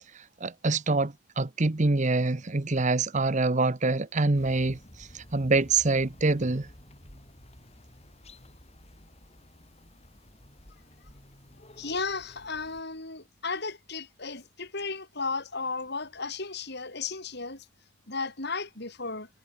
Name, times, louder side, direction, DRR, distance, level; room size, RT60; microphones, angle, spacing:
voice 1, 0.4-4.8 5.1-6.7, right 3 dB, 35° right, 0.9 m, -25 dB
sound 1, 4.3-12.8, left 1 dB, 30° left, 7.6 m, -52 dB
voice 2, 11.8-17.6 18.1-19.3, left 4 dB, 55° left, 4.7 m, -34 dB
head